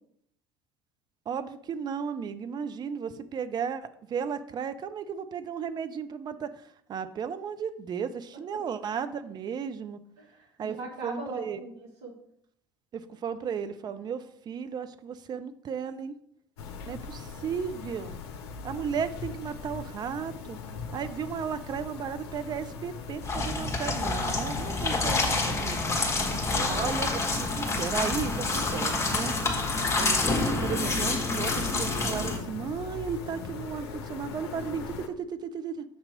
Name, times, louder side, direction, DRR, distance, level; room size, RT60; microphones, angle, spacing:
voice 1, 1.3-6.5 6.9-10.0 10.6-10.8 11.0-11.6 12.9-16.1 16.8-18.2 18.6-20.6 20.9-26.0 26.7-29.3 30.0-30.3 30.6-35.8, right 7 dB, 30° right, 12 dB, 0.4 m, -34 dB
voice 2, 10.2-12.1 26.1-26.8, right 2 dB, 55° right, 0 dB, 1.7 m, -40 dB
sound 1, 16.6-35.1, left 5 dB, 65° left, 0.6 m, -40 dB
sound 2, 23.2-32.4, left 3 dB, 20° left, 1.2 m, -28 dB
6.7 x 2.9 x 4.9 m, 0.71 s
figure-of-eight pair, 65°, 14 cm